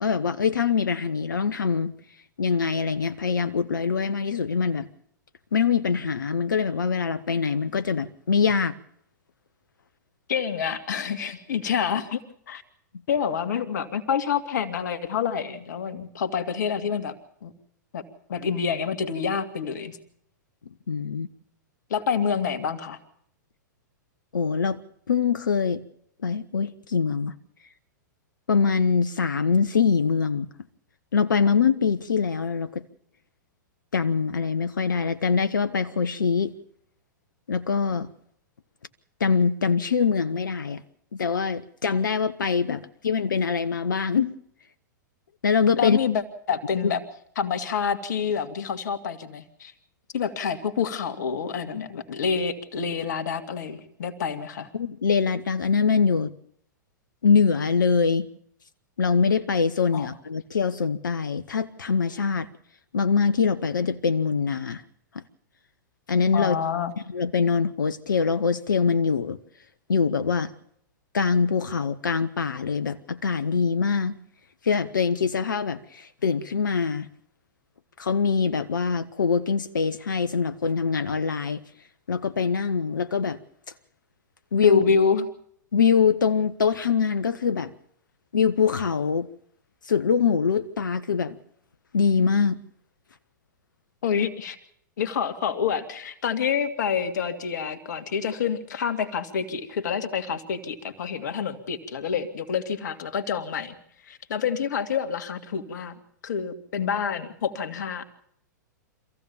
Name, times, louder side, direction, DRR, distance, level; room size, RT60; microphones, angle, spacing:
voice 1, 0.0-1.9 2.4-4.9 5.5-8.7 20.9-21.3 24.3-24.8 25.1-25.8 26.2-27.3 28.5-30.5 31.1-32.8 33.9-36.5 37.5-38.1 39.2-40.8 41.1-44.3 45.4-46.0 54.7-56.3 57.2-58.3 59.0-62.5 62.9-64.8 66.1-66.6 67.1-69.4 69.9-70.5 71.1-74.2 74.6-77.1 78.0-81.6 82.1-83.4 84.5-84.8 85.7-87.7 88.3-89.3 89.8-91.4 91.9-92.6, left 5 dB, 85° left, 13 dB, 1.0 m, -23 dB
voice 2, 10.3-12.2 12.5-12.6 13.1-17.1 17.4-17.5 17.9-18.0 18.3-20.0 21.9-23.0 42.7-42.8 45.8-46.2 46.5-47.0 47.4-49.7 50.1-54.7 59.9-60.1 66.3-66.9 84.6-85.3 94.0-94.6 95.0-103.8 104.1-105.9 106.2-108.0, left 6 dB, 70° left, 9 dB, 2.3 m, -27 dB
25.5 x 15.5 x 7.1 m, 0.69 s
hypercardioid pair, 105°, 10 cm